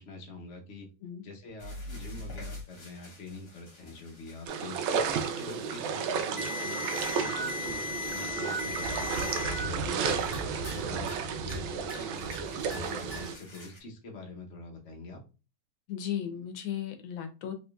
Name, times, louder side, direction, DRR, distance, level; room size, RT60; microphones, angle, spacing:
voice 1, 0.0-0.9 1.2-6.8 7.2-15.2, left 3 dB, 55° left, 0 dB, 0.8 m, -46 dB
sound 1, 1.6-9.7 10.1-10.8 11.1-11.6 11.9-13.8, left 3 dB, 35° left, 1.2 m, -39 dB
sound 2, 4.5-13.3, right 6 dB, 80° right, 1.4 m, -32 dB
voice 2, 15.9-17.5, left 9 dB, 80° left, 6 dB, 1.5 m, -35 dB
4.3 x 2.9 x 2.2 m, 0.32 s
omnidirectional pair, 2.2 m